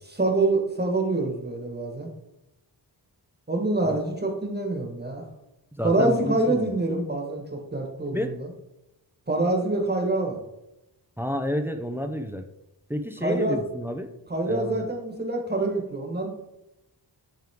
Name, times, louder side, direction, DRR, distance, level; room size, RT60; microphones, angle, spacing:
voice 1, 0.0-2.1 3.5-5.3 5.8-8.5 9.3-10.4 13.2-13.6 14.3-16.3, right 2 dB, 25° right, 1 dB, 1.4 m, -26 dB
voice 2, 5.8-6.7 8.1-8.3 11.2-12.4 12.9-14.1 14.5-14.9, equal, 5° right, 6 dB, 0.5 m, -30 dB
10.5 x 3.7 x 3.6 m, 0.89 s
wide cardioid pair, 120°, 43 cm